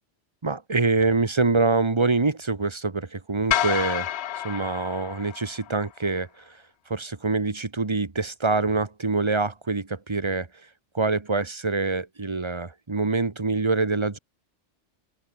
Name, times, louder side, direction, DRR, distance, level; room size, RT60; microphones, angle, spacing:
voice 1, 0.4-4.1 4.4-6.3 6.9-10.5 10.9-14.2, right 3 dB, 25° right, 1.1 m, -25 dB
sound 1, 3.5-5.9, left 11 dB, 65° left, 0.9 m, -29 dB
open air
omnidirectional pair, 1.2 m